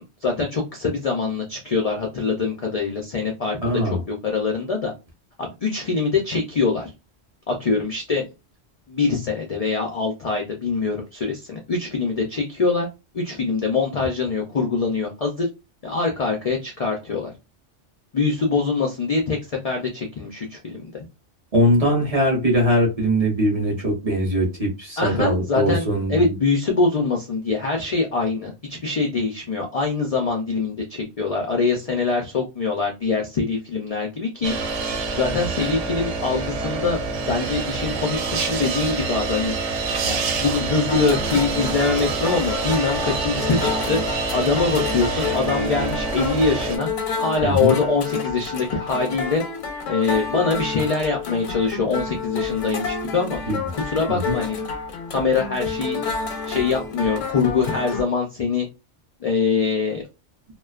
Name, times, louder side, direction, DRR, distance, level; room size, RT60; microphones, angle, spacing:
voice 1, 0.2-3.8 4.1-4.9 5.4-6.9 7.5-8.2 8.9-12.9 13.1-15.5 15.8-17.3 18.1-19.4 19.6-21.0 25.0-37.0 37.2-39.5 40.1-44.0 44.3-46.9 47.2-49.4 49.9-53.4 53.7-54.6 55.1-56.0 56.5-58.7 59.2-60.0, left 4 dB, 65° left, 0.3 m, -23 dB
voice 2, 3.6-4.0 21.5-26.3 47.4-47.7 53.5-53.6 54.1-54.4, equal, 40° right, 0.7 m, -21 dB
sound 1, 34.4-46.8, right 4 dB, 80° right, 0.9 m, -26 dB
sound 2, 40.9-58.0, left 4 dB, 85° left, 0.9 m, -30 dB
2.4 x 2.2 x 2.3 m
omnidirectional pair, 1.2 m